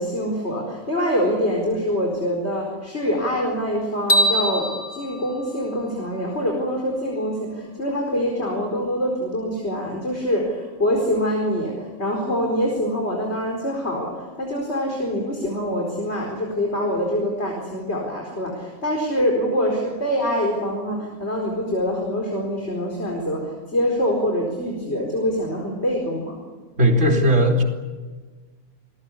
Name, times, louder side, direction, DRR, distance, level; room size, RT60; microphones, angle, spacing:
voice 1, 0.0-26.4, equal, 50° left, 0 dB, 4.8 m, -25 dB
sound 1, 4.1-6.4, equal, 80° left, 3.9 m, -24 dB
voice 2, 26.8-27.6, equal, 60° right, 2 dB, 3.5 m, -17 dB
29.5 x 20.5 x 8.4 m, 1.4 s
omnidirectional pair, 1.4 m